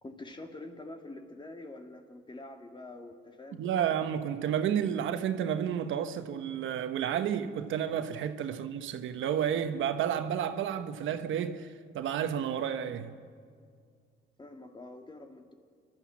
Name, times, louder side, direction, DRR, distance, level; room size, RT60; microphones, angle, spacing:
voice 1, 0.0-3.6 8.5-8.7 14.4-15.5, left 2 dB, 25° left, 2.0 m, -46 dB
voice 2, 3.5-13.1, right 9 dB, 80° right, 1.1 m, -31 dB
28.5 x 12.0 x 7.4 m
cardioid pair, 90°, 20 cm